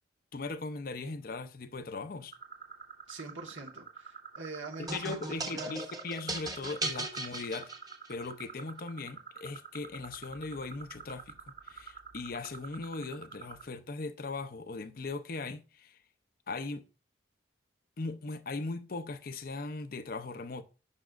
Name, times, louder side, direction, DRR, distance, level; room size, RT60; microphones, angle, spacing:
voice 1, 0.3-2.3 4.8-7.7 8.1-11.3 11.7-16.0 16.5-16.8 18.0-20.6, left 3 dB, 50° left, 0.6 m, -39 dB
sound 1, 2.3-13.6, right 6 dB, 55° right, 2.8 m, -47 dB
voice 2, 3.1-5.8, right 3 dB, 80° right, 1.4 m, -44 dB
sound 2, 4.9-8.3, right 2 dB, 20° right, 0.9 m, -37 dB
8.1 x 6.0 x 2.5 m
head